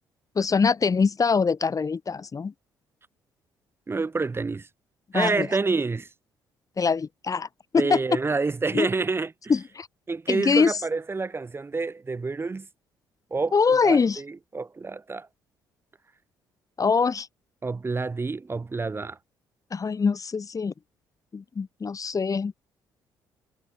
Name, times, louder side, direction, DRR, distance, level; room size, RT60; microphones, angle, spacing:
voice 1, 0.4-2.5 5.1-5.5 6.8-7.5 7.7-8.0 8.7-8.9 9.5-9.9 10.3-10.8 13.5-14.2 16.8-17.3 19.7-20.7 21.3-22.5, left 5 dB, 35° left, 2.3 m, -23 dB
voice 2, 3.9-4.7 5.1-6.1 7.8-9.3 10.1-12.7 13.3-13.6 13.8-15.3 17.6-19.2, right 3 dB, 25° right, 0.7 m, -28 dB
hypercardioid pair, 50°, 10 cm